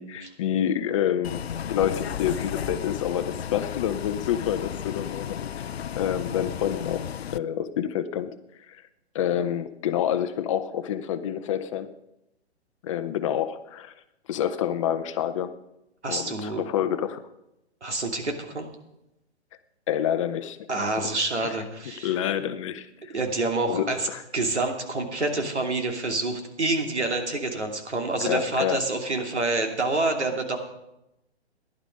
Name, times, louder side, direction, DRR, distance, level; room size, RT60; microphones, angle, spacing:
voice 1, 0.0-5.4 6.0-7.0 7.3-8.3 8.7-8.8 9.1-11.9 12.8-13.9 14.3-15.5 16.1-17.2 19.9-20.7 22.0-23.1 23.7-24.2 28.3-28.8, left 10 dB, 30° left, 10 dB, 0.7 m, -28 dB
Bus, 1.2-7.4, left 9 dB, 65° left, 0.5 m, -33 dB
voice 2, 16.0-16.7 17.8-18.7 20.7-22.1 23.1-24.1 24.3-30.6, right 2 dB, 80° right, 3 dB, 2.8 m, -27 dB
15.5 x 11.0 x 5.3 m, 0.90 s
figure-of-eight pair, 130°, 34 cm